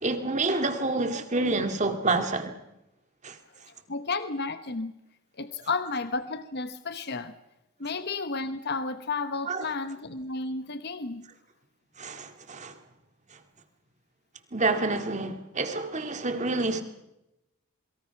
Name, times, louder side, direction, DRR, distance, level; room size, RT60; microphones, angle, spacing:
voice 1, 0.0-2.5 3.2-3.4 9.5-9.7 12.0-12.7 14.5-16.8, right 3 dB, 35° right, 2.1 m, -28 dB
voice 2, 3.9-4.9 5.4-7.3 7.8-11.2, left 3 dB, 50° left, 1.1 m, -32 dB
28.5 x 22.5 x 5.9 m
head